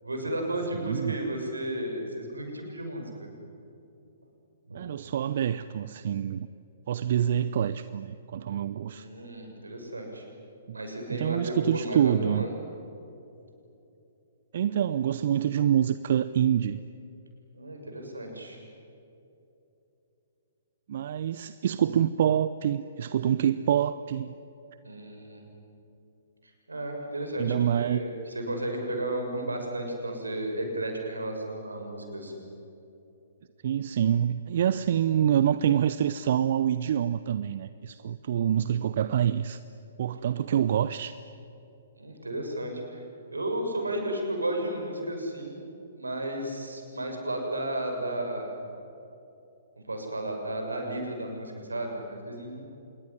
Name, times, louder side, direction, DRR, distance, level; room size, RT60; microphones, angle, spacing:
voice 1, 0.0-3.3 4.7-4.8 8.9-10.2 10.7-12.5 17.5-18.6 24.8-25.4 26.4-32.4 42.0-43.0 43.3-45.6 46.0-48.6 49.9-52.6, right 1 dB, 85° right, 3 dB, 6.4 m, -33 dB
voice 2, 0.8-1.2 4.7-6.5 6.9-9.0 10.7-10.8 11.1-12.5 14.5-16.8 20.9-24.3 27.4-28.0 33.6-39.6 40.0-41.1, right 9 dB, 55° right, 14 dB, 0.7 m, -26 dB
27.0 x 21.5 x 10.0 m, 2.8 s
figure-of-eight pair, 120°, 0 cm